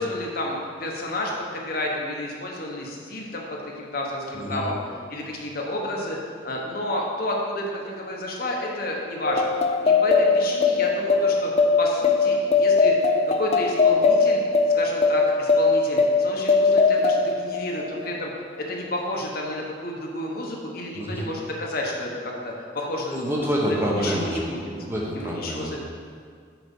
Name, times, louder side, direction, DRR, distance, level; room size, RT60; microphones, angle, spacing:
voice 1, 0.0-4.8 5.1-6.2 6.4-9.6 9.8-11.5 11.8-14.4 14.7-18.3 18.6-24.6 25.1-25.8, left 1 dB, 55° left, -1 dB, 1.1 m, -31 dB
voice 2, 4.3-4.7 20.9-21.3 23.1-25.8, equal, 15° right, -3 dB, 1.1 m, -27 dB
sound 1, 9.3-18.3, left 4 dB, 35° left, 0.4 m, -20 dB
6.0 x 5.8 x 5.5 m, 2.1 s
head